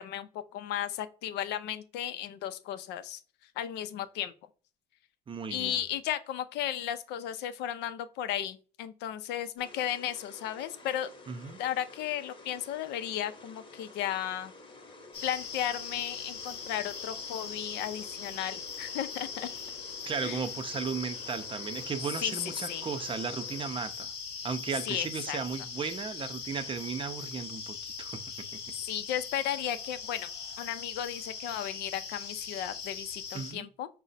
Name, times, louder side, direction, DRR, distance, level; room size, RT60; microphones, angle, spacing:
voice 1, 0.0-3.2 3.6-4.3 5.5-11.1 11.6-14.5 15.2-19.5 20.2-20.4 22.2-22.3 22.7-22.9 24.9-25.4 28.8-30.3 30.6-33.9, left 11 dB, 85° left, 0.5 m, -34 dB
voice 2, 5.3-5.8 11.3-11.6 20.1-24.1 24.4-28.6 33.3-33.7, right 6 dB, 30° right, 0.5 m, -36 dB
sound 1, 9.6-23.7, left 3 dB, 30° left, 0.9 m, -51 dB
sound 2, 15.1-33.5, left 6 dB, 70° left, 0.9 m, -41 dB
4.8 x 2.1 x 4.0 m
cardioid pair, 110°, 17 cm